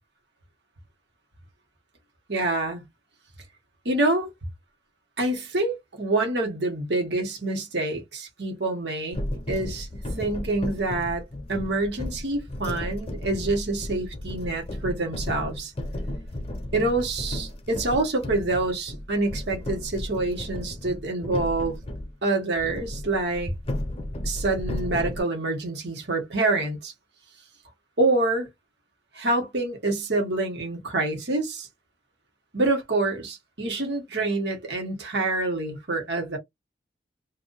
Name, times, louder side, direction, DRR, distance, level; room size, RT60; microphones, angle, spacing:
voice 1, 2.3-2.9 3.8-4.3 5.2-11.2 11.5-15.7 16.7-21.8 22.2-23.5 24.2-26.9 28.0-28.5 29.1-31.7 32.5-36.4, right 2 dB, 75° right, 1.3 m, -26 dB
sound 1, 9.1-22.1 22.6-25.2, left 1 dB, 35° left, 0.7 m, -34 dB
2.6 x 2.6 x 3.9 m
head